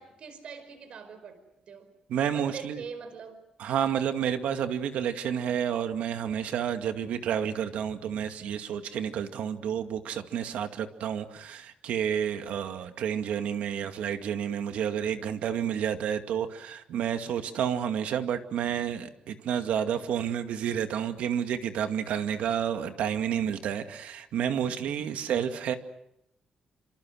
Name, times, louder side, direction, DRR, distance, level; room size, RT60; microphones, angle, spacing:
voice 1, 0.0-1.4 1.7-1.9 2.3-3.4, right 5 dB, 55° right, 10 dB, 5.0 m, -43 dB
voice 2, 2.1-2.8 3.6-25.7, right 9 dB, 85° right, 7 dB, 2.2 m, -30 dB
28.0 x 26.5 x 6.5 m, 0.80 s
wide cardioid pair, 165°, 2 cm